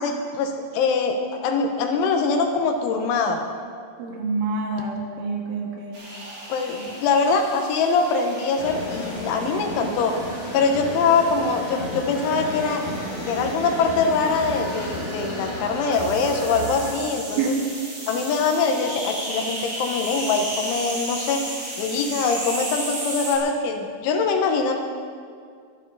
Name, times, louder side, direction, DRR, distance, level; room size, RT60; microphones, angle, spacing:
voice 1, 0.0-3.4 6.5-10.2 10.5-12.8 13.2-17.5 18.1-21.4 21.8-24.7, left 4 dB, 85° left, 4 dB, 3.7 m, -23 dB
voice 2, 4.0-6.0 17.4-17.5, right 4 dB, 85° right, 0 dB, 4.2 m, -27 dB
sound 1, 5.9-23.4, right 1 dB, 25° right, 3.5 m, -35 dB
sound 2, 8.6-16.9, left 1 dB, 50° left, 3.7 m, -32 dB
23.0 x 10.0 x 4.2 m, 2.1 s
omnidirectional pair, 5.3 m